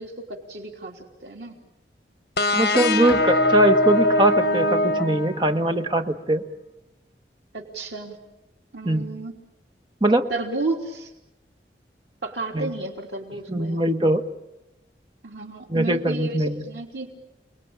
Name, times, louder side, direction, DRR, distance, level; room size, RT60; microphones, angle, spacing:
voice 1, 0.0-1.6 7.5-8.2 8.7-9.4 10.3-11.1 12.2-13.8 15.2-17.1, right 2 dB, 85° right, 2 dB, 3.5 m, -32 dB
sound 1, 2.4-5.9, left 1 dB, 65° left, 1.7 m, -22 dB
voice 2, 2.5-6.4 8.8-9.1 10.0-10.2 12.5-12.7 13.5-14.2 15.7-16.6, right 1 dB, 25° right, 6 dB, 1.4 m, -21 dB
Bowed string instrument, 3.1-6.3, left 1 dB, 30° left, 4.7 m, -42 dB
29.5 x 20.5 x 8.9 m, 0.93 s
head